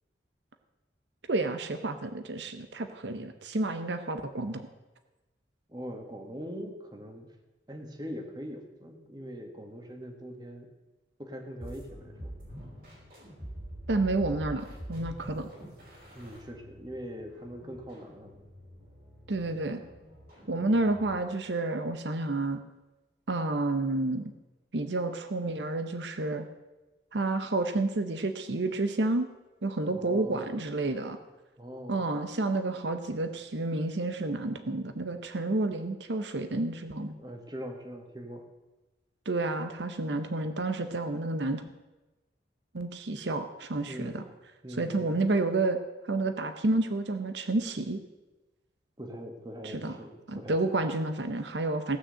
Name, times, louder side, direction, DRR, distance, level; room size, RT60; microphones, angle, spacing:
voice 1, 1.3-4.7 13.9-15.5 19.3-19.8 20.5-22.6 23.3-24.2 24.7-26.5 27.1-29.3 29.6-31.2 31.9-37.2 39.3-41.6 42.7-44.2 44.8-45.8 46.1-48.0 49.6-49.9 50.3-52.0, right 2 dB, 75° right, 9 dB, 0.8 m, -30 dB
voice 2, 5.7-7.3 7.7-10.7 11.2-12.4 16.1-18.4 29.9-30.6 31.6-32.0 37.2-38.4 43.9-44.2 44.6-45.2 49.0-50.7, equal, 25° right, 3 dB, 1.7 m, -42 dB
sound 1, 11.6-21.3, equal, 55° right, 4.9 m, -46 dB
16.5 x 6.3 x 7.8 m, 1.1 s
head